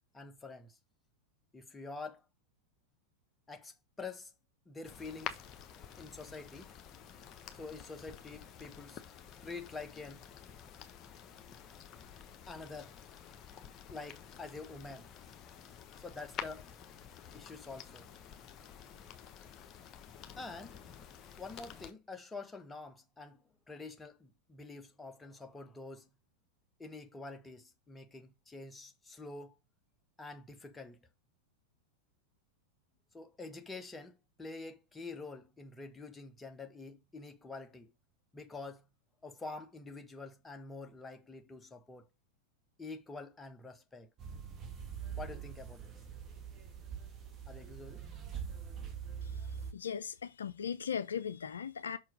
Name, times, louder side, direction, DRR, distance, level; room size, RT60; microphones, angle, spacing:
voice 1, 0.1-0.8 1.5-2.2 3.5-4.3 4.7-5.4 6.0-6.7 7.5-9.0 9.4-10.2 12.5-13.0 13.9-15.1 16.0-16.7 17.3-18.1 20.4-20.8 21.4-26.1 26.8-29.6 30.2-31.1 33.1-37.9 38.3-38.9 39.2-42.1 42.8-44.1 45.2-45.9 47.5-48.1, left 3 dB, 10° left, 1.2 m, -47 dB
sound 1, 4.8-21.9, left 8 dB, 30° left, 1.2 m, -50 dB
sound 2, 44.2-49.7, right 7 dB, 25° right, 1.5 m, -43 dB
voice 2, 49.7-52.0, left 7 dB, 70° left, 0.5 m, -38 dB
5.9 x 4.5 x 5.0 m
figure-of-eight pair, 90°, 0 cm